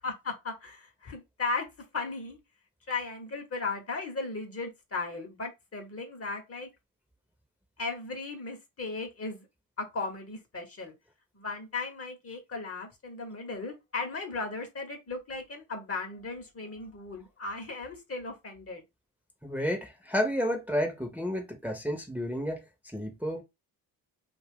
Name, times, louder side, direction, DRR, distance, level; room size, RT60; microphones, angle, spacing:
voice 1, 0.0-1.7 1.9-2.4 2.9-6.7 7.8-9.5 9.8-10.9 11.3-18.8, left 3 dB, 30° left, 1.0 m, -36 dB
voice 2, 19.4-22.6 22.9-23.4, equal, 5° right, 0.9 m, -31 dB
2.5 x 2.4 x 3.5 m
hypercardioid pair, 55°, 46 cm